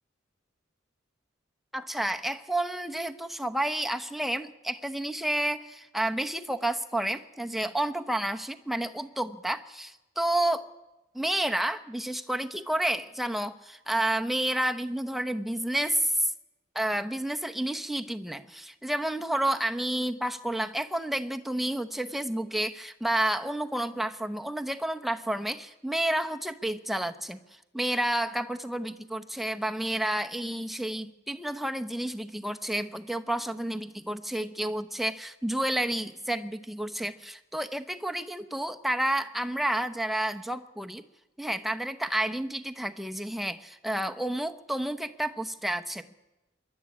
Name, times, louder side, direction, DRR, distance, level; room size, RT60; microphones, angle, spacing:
voice 1, 1.7-10.7 11.1-16.3 16.7-27.4 27.7-41.0 41.4-46.0, right 1 dB, ahead, 6 dB, 0.9 m, -30 dB
25.5 x 11.5 x 9.8 m, 1.0 s
head